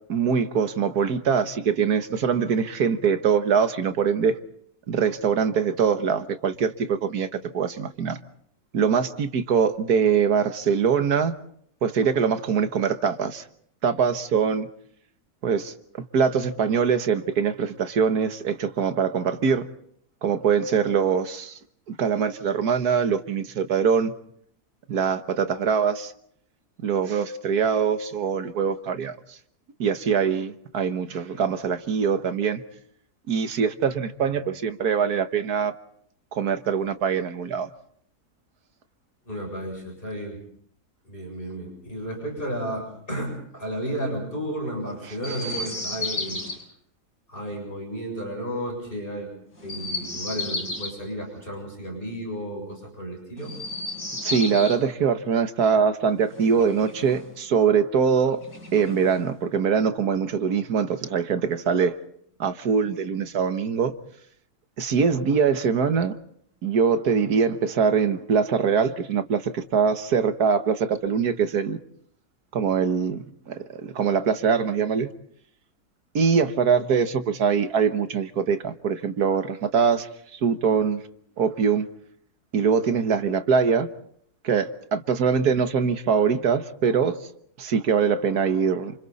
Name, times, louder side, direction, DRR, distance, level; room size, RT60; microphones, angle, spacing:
voice 1, 0.1-4.4 4.9-8.2 8.7-11.3 11.8-13.4 13.8-14.7 15.4-19.7 20.2-21.6 21.9-24.1 24.9-26.1 26.8-29.2 29.8-32.6 33.3-35.7 36.3-37.7 54.2-58.4 58.7-62.0 62.4-63.9 64.8-66.2 66.6-71.8 72.5-75.1 76.2-81.0 81.4-81.9 82.5-83.9 84.4-87.2 87.6-88.9, right 6 dB, 75° right, 1.8 m, -23 dB
voice 2, 39.3-40.4 41.0-46.6 47.3-49.3 49.6-53.5, right 1 dB, 35° left, 7.8 m, -33 dB
Chirp tweet, 45.2-46.6 49.6-51.0 53.4-54.8 56.2-57.3 58.4-59.3, left 2 dB, 70° left, 7.4 m, -33 dB
29.5 x 27.5 x 4.2 m
omnidirectional pair, 1.6 m